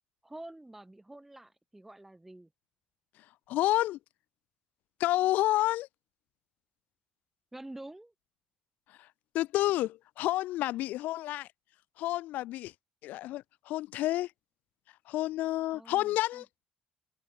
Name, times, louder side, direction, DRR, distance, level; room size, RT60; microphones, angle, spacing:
voice 1, 0.2-2.5 7.5-8.1 15.7-16.4, right 1 dB, 10° right, 5.5 m, -48 dB
voice 2, 3.5-4.0 5.0-5.9 9.3-11.5 12.0-12.7 13.0-14.3 15.1-16.5, left 16 dB, 80° left, 1.0 m, -29 dB
open air
cardioid pair, 115°, 3 cm